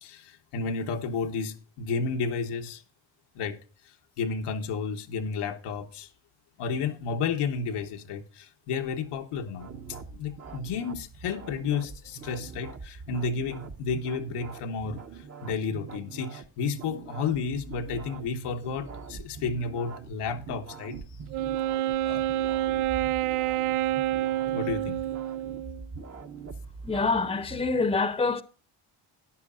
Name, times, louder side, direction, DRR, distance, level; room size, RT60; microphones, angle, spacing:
voice 1, 0.0-2.8 3.3-3.6 4.2-6.1 6.6-9.7 10.1-21.0 22.0-22.2 24.5-25.0, left 5 dB, 90° left, 1.3 m, -32 dB
sound 1, 9.6-27.9, right 5 dB, 30° right, 0.9 m, -43 dB
Wind instrument woodwind instrument, 21.3-25.9, right 13 dB, 90° right, 0.6 m, -28 dB
voice 2, 26.8-28.4, left 4 dB, 10° left, 0.8 m, -26 dB
13.0 x 9.9 x 2.5 m
cardioid pair, 85°, 50 cm